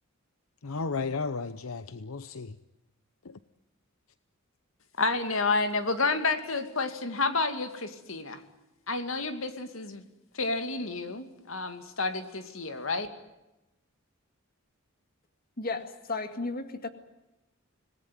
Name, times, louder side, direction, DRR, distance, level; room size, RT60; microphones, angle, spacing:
voice 1, 0.6-2.6 3.2-3.4, left 4 dB, 85° left, 0.8 m, -34 dB
voice 2, 5.0-8.4 8.9-10.0 10.3-13.1, left 3 dB, 70° left, 2.5 m, -30 dB
voice 3, 15.6-16.9, left 3 dB, 45° left, 2.1 m, -34 dB
26.5 x 19.0 x 9.4 m
head